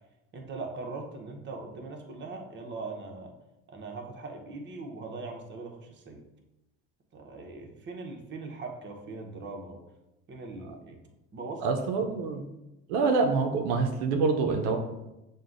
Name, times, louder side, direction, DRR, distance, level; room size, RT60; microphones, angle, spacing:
voice 1, 0.3-3.3 3.7-6.2 7.1-9.8 10.3-11.0 11.3-11.7 12.3-12.4, right 3 dB, 35° right, 2 dB, 0.8 m, -40 dB
voice 2, 11.6-12.4 12.9-14.8, right 4 dB, 90° right, 4 dB, 0.5 m, -26 dB
6.4 x 2.2 x 2.4 m, 0.97 s
supercardioid pair, 90°, 31 cm